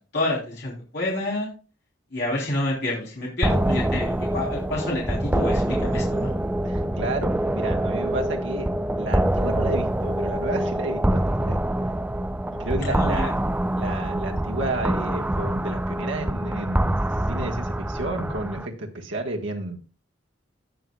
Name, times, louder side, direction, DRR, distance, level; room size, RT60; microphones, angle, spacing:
voice 1, 0.1-1.5 2.1-6.3 12.8-13.3, left 1 dB, 60° left, -4 dB, 3.3 m, -28 dB
sound 1, 3.4-18.7, right 1 dB, 10° right, 0.4 m, -25 dB
voice 2, 6.6-8.7 9.0-11.6 12.5-13.4 13.7-17.0 17.3-19.8, right 2 dB, 75° right, 2 dB, 1.5 m, -31 dB
18.0 x 6.3 x 2.3 m, 0.35 s
head